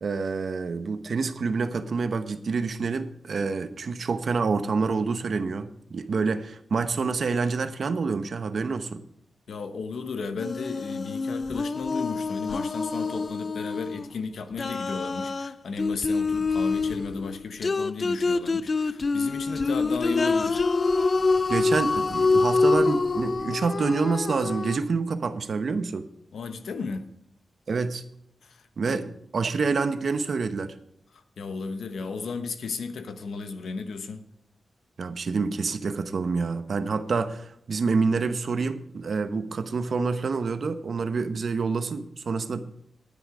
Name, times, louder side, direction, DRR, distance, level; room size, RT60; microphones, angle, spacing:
voice 1, 0.0-9.0 21.5-26.1 27.7-28.0 28.8-30.7 35.0-42.7, right 4 dB, 55° right, 0.9 m, -27 dB
voice 2, 9.5-20.7 26.3-27.1 28.4-29.0 31.1-34.3, left 4 dB, 85° left, 1.1 m, -34 dB
sound 1, 10.4-14.1 14.6-24.8, left 3 dB, 35° left, 0.4 m, -26 dB
10.5 x 9.7 x 4.9 m
wide cardioid pair, 150°, 0 cm